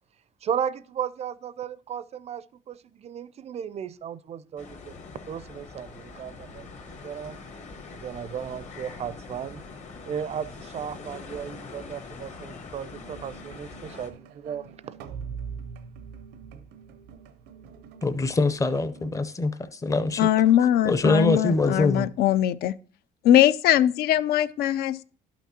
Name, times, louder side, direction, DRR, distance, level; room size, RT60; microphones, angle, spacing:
voice 1, 0.4-4.9 5.3-7.4 7.9-9.6 10.0-14.9, right 8 dB, 40° right, 0.4 m, -35 dB
sound 1, 4.6-14.1, left 4 dB, 45° left, 1.2 m, -43 dB
sound 2, 12.9-19.1, right 6 dB, 90° right, 0.6 m, -43 dB
voice 2, 18.0-20.3 20.8-22.1, left 3 dB, 20° left, 0.6 m, -24 dB
voice 3, 20.2-22.7 23.2-25.0, left 11 dB, 65° left, 0.4 m, -21 dB
11.5 x 5.9 x 2.8 m
cardioid pair, 110°, 17 cm